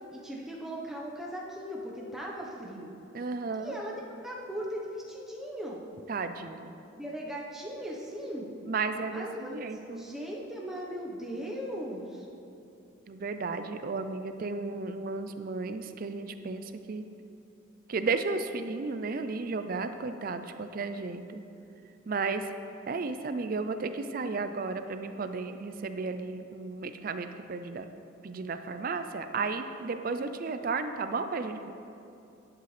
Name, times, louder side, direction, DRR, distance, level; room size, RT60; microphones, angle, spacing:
voice 1, 0.1-2.9 3.6-5.8 6.9-8.5 9.1-12.3 24.4-24.5 30.1-30.3, equal, ahead, -3 dB, 1.0 m, -38 dB
voice 2, 3.1-3.7 6.1-6.7 8.7-10.1 13.1-17.0 17.9-21.4 22.1-22.4 22.9-27.9 28.2-31.7, right 4 dB, 45° right, 9 dB, 0.4 m, -33 dB
11.5 x 8.2 x 3.3 m, 2.7 s
head